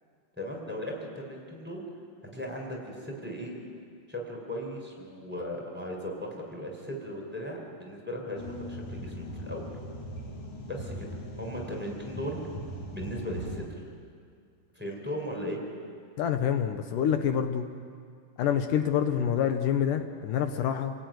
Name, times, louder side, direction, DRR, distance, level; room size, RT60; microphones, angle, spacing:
voice 1, 0.4-1.9 2.3-3.6 4.1-9.6 10.7-11.1 11.4-12.4 12.9-13.6 14.7-15.6, equal, 5° right, -1 dB, 4.4 m, -37 dB
sound 1, 8.4-13.7, equal, 45° left, 2.3 m, -40 dB
voice 2, 16.2-17.7 18.4-20.9, left 9 dB, 75° left, 7 dB, 2.5 m, -27 dB
28.0 x 17.5 x 9.4 m, 2.2 s
omnidirectional pair, 3.8 m